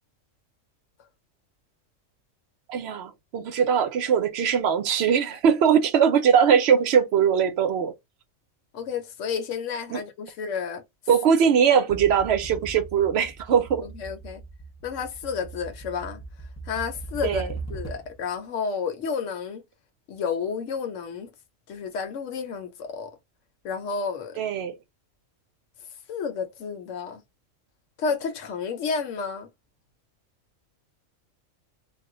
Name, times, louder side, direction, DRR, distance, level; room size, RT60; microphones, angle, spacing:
voice 1, 2.7-7.9 9.9-10.0 11.1-13.8 17.2-17.5 24.4-24.7, right 7 dB, 65° right, 0.8 m, -21 dB
voice 2, 8.7-10.8 13.8-14.4 14.8-16.2 16.6-19.6 20.1-21.3 21.7-23.1 23.6-24.4 26.1-27.2 28.0-29.5, left 5 dB, 75° left, 1.0 m, -31 dB
sound 1, 11.9-18.3, right 3 dB, 20° left, 0.4 m, -39 dB
2.4 x 2.1 x 3.6 m
omnidirectional pair, 1.3 m